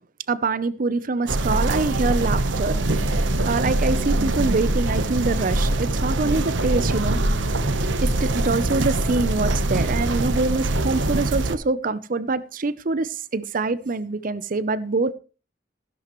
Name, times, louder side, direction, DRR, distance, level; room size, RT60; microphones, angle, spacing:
voice 1, 0.3-2.8 3.1-7.2 8.0-15.1, right 3 dB, 45° right, 0.6 m, -25 dB
sound 1, 1.3-11.5, right 2 dB, 80° right, 1.0 m, -23 dB
15.5 x 11.0 x 3.1 m
head